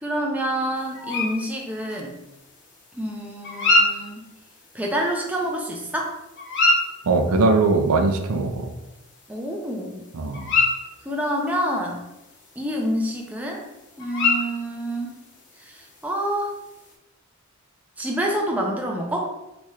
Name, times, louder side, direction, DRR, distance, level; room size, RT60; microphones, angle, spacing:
voice 1, 0.0-2.2 2.9-4.3 4.7-6.1 9.3-10.0 11.0-12.0 12.6-13.6 14.0-15.1 15.6-16.5 18.0-19.3, right 1 dB, 5° right, -1 dB, 0.4 m, -27 dB
sound 1, 0.8-16.9, left 2 dB, 55° left, 0.8 m, -29 dB
voice 2, 7.0-8.7 10.1-10.5, right 3 dB, 75° right, 4 dB, 0.5 m, -20 dB
3.0 x 2.4 x 4.3 m, 0.94 s
head